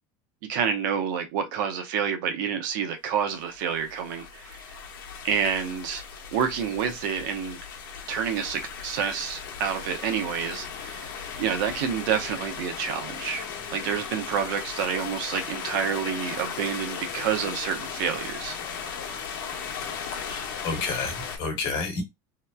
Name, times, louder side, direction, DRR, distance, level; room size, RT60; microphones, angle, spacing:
voice 1, 0.5-4.6 5.2-6.0 6.3-7.6 8.1-13.5 13.7-18.6, right 7 dB, 75° right, 0.6 m, -28 dB
sound 1, 3.4-21.4, left 6 dB, 90° left, 0.9 m, -37 dB
voice 2, 20.3-22.0, left 4 dB, 50° left, 1.3 m, -30 dB
3.0 x 2.0 x 2.2 m
supercardioid pair, 140°, 11 cm